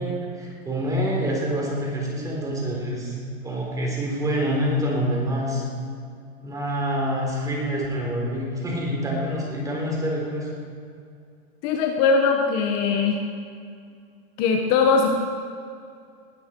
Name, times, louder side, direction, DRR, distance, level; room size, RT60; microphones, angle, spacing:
voice 1, 0.0-5.6 6.4-10.5, equal, 10° right, -2 dB, 3.8 m, -26 dB
voice 2, 11.6-13.2 14.4-15.1, left 5 dB, 35° left, 3 dB, 1.2 m, -20 dB
20.0 x 13.0 x 4.5 m, 2.4 s
supercardioid pair, 155°, 32 cm